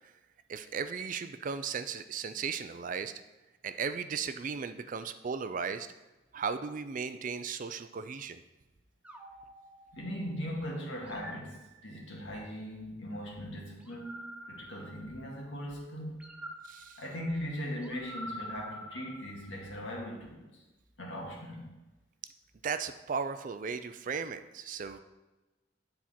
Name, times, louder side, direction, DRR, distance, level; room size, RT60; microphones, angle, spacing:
voice 1, 0.5-3.1 3.6-5.9 6.3-8.4 16.6-17.0 22.6-25.0, right 6 dB, 45° right, 11 dB, 0.4 m, -36 dB
sound 1, 9.0-10.4 11.0-12.3 13.8-15.5 16.2-19.7, equal, 5° right, 0.7 m, -47 dB
voice 2, 9.9-16.2 17.0-20.6 21.0-21.7, equal, 80° left, -2 dB, 1.9 m, -39 dB
9.4 x 4.4 x 4.3 m, 1.1 s
head